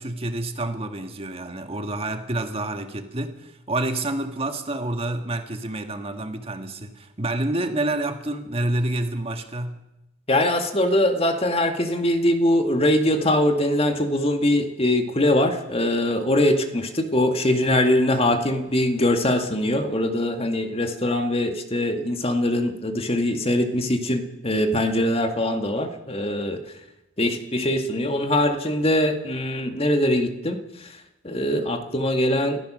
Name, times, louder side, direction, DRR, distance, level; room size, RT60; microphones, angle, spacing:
voice 1, 0.0-9.8, right 2 dB, 30° right, 1.7 m, -28 dB
voice 2, 10.3-26.6 27.2-30.6 31.2-32.6, left 1 dB, 30° left, 2.0 m, -22 dB
29.5 x 14.5 x 6.3 m
head